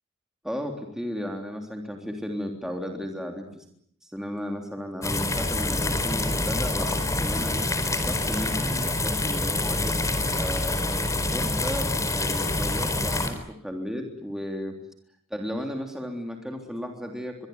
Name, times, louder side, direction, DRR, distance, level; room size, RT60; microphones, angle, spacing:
voice 1, 0.4-3.6 4.0-7.7 8.0-9.9 10.4-14.8 15.3-17.5, equal, 5° right, 2 dB, 3.5 m, -34 dB
sound 1, 5.0-13.3, left 2 dB, 15° left, 4.2 m, -26 dB
24.5 x 23.5 x 9.5 m, 0.68 s
head